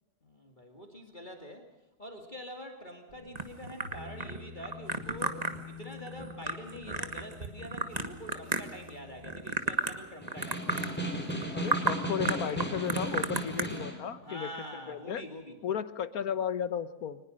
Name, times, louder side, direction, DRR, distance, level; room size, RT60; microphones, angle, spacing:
voice 1, 0.2-1.7 2.0-10.9 14.2-15.6, equal, 30° left, 3 dB, 2.5 m, -45 dB
sound 1, 3.1-10.5, left 5 dB, 75° right, 3.9 m, -49 dB
sound 2, 3.4-8.9 9.2-10.0 10.3-10.9 11.3-11.4 11.7-12.0 12.3-13.7, right 3 dB, 25° right, 1.5 m, -33 dB
Snare drum, 10.2-14.1, right 1 dB, 5° left, 3.7 m, -35 dB
voice 2, 11.5-15.2 15.6-17.2, left 8 dB, 70° left, 13 dB, 1.5 m, -34 dB
24.0 x 20.0 x 6.5 m, 0.98 s
omnidirectional pair, 1.7 m